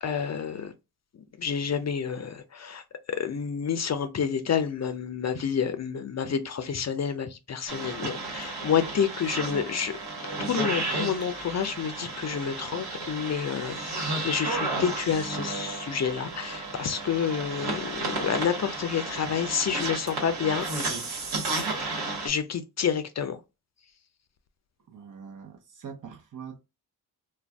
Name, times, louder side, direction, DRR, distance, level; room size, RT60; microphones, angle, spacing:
voice 1, 0.0-0.7 1.4-9.9 10.5-20.7 22.2-23.4, left 7 dB, 40° left, 0.5 m, -29 dB
sound 1, 7.7-22.3, right 2 dB, 75° right, 1.2 m, -33 dB
voice 2, 24.9-26.6, right 7 dB, 50° right, 0.9 m, -43 dB
2.4 x 2.2 x 3.3 m
supercardioid pair, 45°, 40 cm